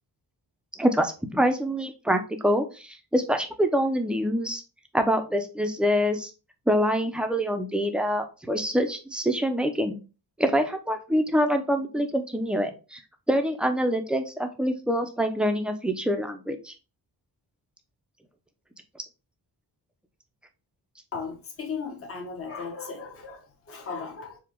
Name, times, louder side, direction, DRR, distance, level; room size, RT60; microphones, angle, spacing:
voice 1, 0.8-4.6 4.9-6.3 6.7-10.0 10.4-13.0 13.3-16.7, equal, ahead, 0.6 m, -25 dB
voice 2, 21.1-24.4, left 5 dB, 35° left, 1.0 m, -36 dB
4.7 x 2.4 x 3.7 m
wide cardioid pair, 125°, 40 cm